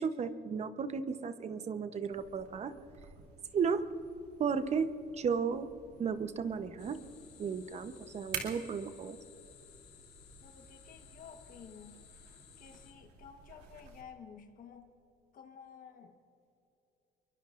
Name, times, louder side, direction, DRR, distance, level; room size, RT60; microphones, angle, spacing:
voice 1, 0.0-2.7 3.5-3.8 4.4-4.9 5.2-5.7 6.0-7.0 7.4-9.2, right 6 dB, 40° right, 11 dB, 0.9 m, -34 dB
sound 1, 2.1-14.0, right 6 dB, 80° right, 2.5 m, -50 dB
sound 2, 6.8-12.9, left 8 dB, 85° left, 2.7 m, -58 dB
voice 2, 10.4-12.0 12.6-14.9 15.3-16.1, left 7 dB, 55° left, 5 dB, 1.3 m, -52 dB
23.0 x 22.5 x 2.5 m, 2.8 s
cardioid pair, 110°, 17 cm